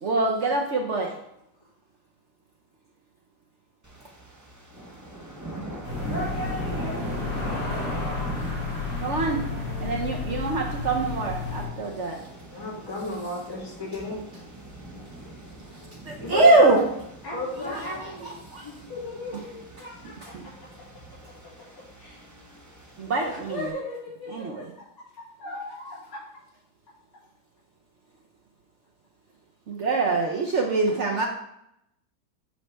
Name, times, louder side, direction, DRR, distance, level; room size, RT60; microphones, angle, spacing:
voice 1, 0.0-1.2 9.0-9.4 9.8-12.2 16.0-16.8 17.6-17.9 18.5-18.6 20.3-20.5 23.0-23.7 24.3-24.6 29.7-31.3, right 3 dB, 70° right, 1 dB, 0.6 m, -24 dB
sound 1, 3.8-23.7, right 1 dB, 20° right, 0.4 m, -41 dB
sound 2, 5.8-11.7, left 4 dB, 15° left, 3.0 m, -31 dB
voice 2, 6.1-7.0 9.1-9.9 12.5-14.2 15.2-15.3 15.8-15.9 16.2-16.8 17.3-18.0, left 1 dB, 40° left, -6 dB, 2.8 m, -33 dB
voice 3, 17.2-18.3 18.6-20.5 22.0-22.2 23.2-24.6 25.4-26.2, left 1 dB, 65° left, -11 dB, 2.7 m, -38 dB
10.0 x 4.4 x 3.4 m, 0.81 s
omnidirectional pair, 2.1 m